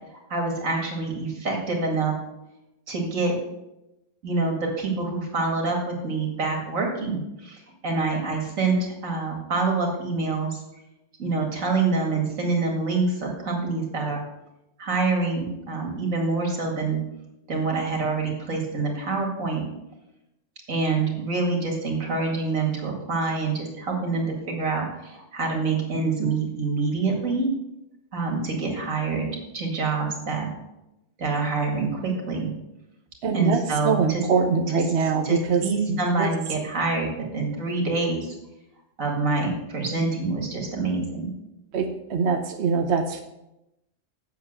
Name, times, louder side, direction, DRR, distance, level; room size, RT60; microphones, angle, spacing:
voice 1, 0.3-2.1 2.9-3.3 4.2-10.6 11.2-14.2 14.8-17.0 17.5-19.6 20.7-27.5 28.1-29.3 29.5-30.5 31.2-32.5 33.3-34.2 35.2-38.3 39.0-41.3, right 3 dB, 85° right, 1 dB, 2.6 m, -26 dB
voice 2, 33.2-36.3 41.7-43.2, right 5 dB, 60° right, 5 dB, 1.0 m, -24 dB
8.3 x 7.1 x 6.6 m, 0.91 s
omnidirectional pair, 1.4 m